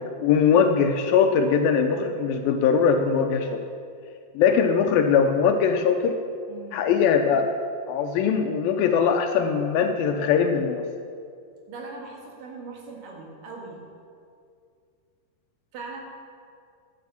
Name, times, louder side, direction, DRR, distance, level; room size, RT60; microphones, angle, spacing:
voice 1, 0.0-3.6 4.4-6.2 6.7-7.5 7.9-10.8, left 6 dB, 80° left, 5 dB, 2.4 m, -21 dB
voice 2, 6.5-6.9 11.7-13.8 15.7-16.0, right 3 dB, 65° right, -1 dB, 3.4 m, -40 dB
13.0 x 9.6 x 7.0 m, 2.3 s
omnidirectional pair, 4.3 m